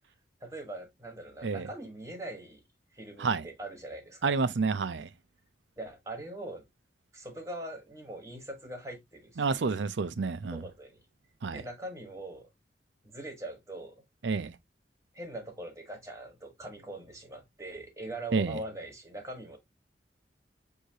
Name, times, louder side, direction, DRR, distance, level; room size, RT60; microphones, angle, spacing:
voice 1, 0.4-2.6 2.9-4.4 5.8-6.6 7.1-9.6 10.5-11.0 11.5-12.5 13.0-14.0 15.1-19.6, right 1 dB, 15° right, 1.2 m, -42 dB
voice 2, 4.2-5.1 9.4-10.6 11.4-11.6 14.2-14.5 18.3-18.6, right 4 dB, 80° right, 0.5 m, -29 dB
6.4 x 2.8 x 2.8 m
head